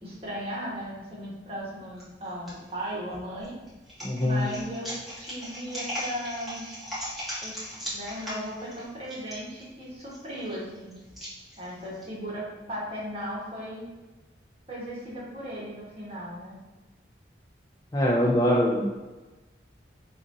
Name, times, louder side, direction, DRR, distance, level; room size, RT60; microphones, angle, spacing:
voice 1, 0.0-3.5 4.2-4.9 5.2-6.6 7.4-10.9 11.6-13.8 14.7-16.6, equal, 30° right, -6 dB, 1.1 m, -36 dB
sound 1, 2.0-2.5 3.1-12.0, equal, ahead, 1.0 m, -38 dB
voice 2, 4.0-4.5 17.9-19.0, equal, 20° left, -4 dB, 0.3 m, -23 dB
4.9 x 2.4 x 2.6 m, 1.2 s
head